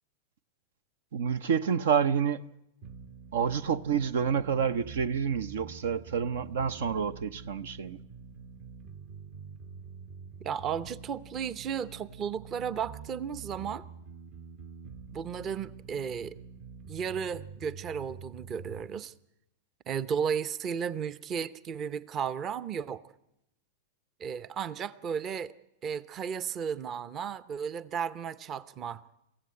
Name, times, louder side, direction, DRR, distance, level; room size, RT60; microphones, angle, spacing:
voice 1, 1.1-2.4 3.3-8.0, right 7 dB, 75° right, 0.7 m, -28 dB
sound 1, 2.8-18.8, right 5 dB, 50° right, 1.3 m, -47 dB
voice 2, 10.4-13.8 15.1-16.4 16.9-19.1 19.9-23.0 24.2-25.5 25.8-29.0, right 7 dB, 35° right, 0.8 m, -34 dB
22.5 x 15.5 x 9.7 m
hypercardioid pair, 110°, 0 cm